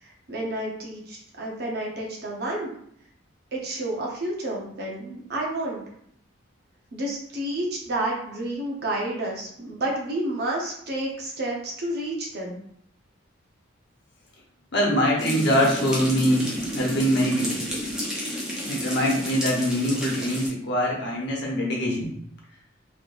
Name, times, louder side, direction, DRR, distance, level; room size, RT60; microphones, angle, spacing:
voice 1, 0.3-2.7 3.5-5.8 6.9-12.6, right 1 dB, 50° right, -2 dB, 0.8 m, -30 dB
voice 2, 14.7-17.6 18.7-22.1, equal, 55° left, -3 dB, 1.0 m, -23 dB
sound 1, 15.2-20.5, equal, 5° right, 0.7 m, -31 dB
3.6 x 3.0 x 2.5 m, 0.67 s
head